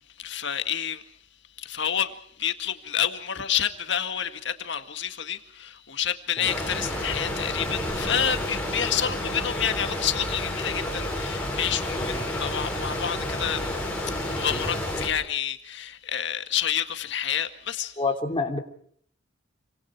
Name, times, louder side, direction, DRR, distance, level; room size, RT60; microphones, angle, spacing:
voice 1, 0.2-1.1 1.6-13.6 14.2-18.0, left 9 dB, 60° left, 1.9 m, -29 dB
sound 1, 6.4-15.1, left 1 dB, 5° left, 7.6 m, -30 dB
voice 2, 18.0-18.6, left 3 dB, 25° left, 3.3 m, -29 dB
29.0 x 25.5 x 4.8 m
head